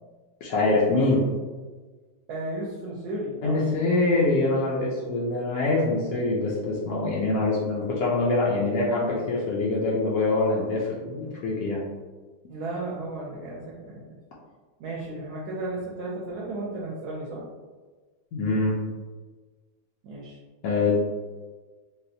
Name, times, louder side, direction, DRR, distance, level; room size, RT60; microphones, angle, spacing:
voice 1, 0.4-1.2 3.4-11.8 18.3-18.8 20.6-21.0, left 2 dB, 70° left, -5 dB, 0.9 m, -24 dB
voice 2, 2.3-3.7 12.5-14.2 14.8-17.4 20.0-20.4, right 2 dB, 70° right, -5 dB, 1.1 m, -34 dB
4.0 x 2.1 x 2.6 m, 1.4 s
omnidirectional pair, 1.9 m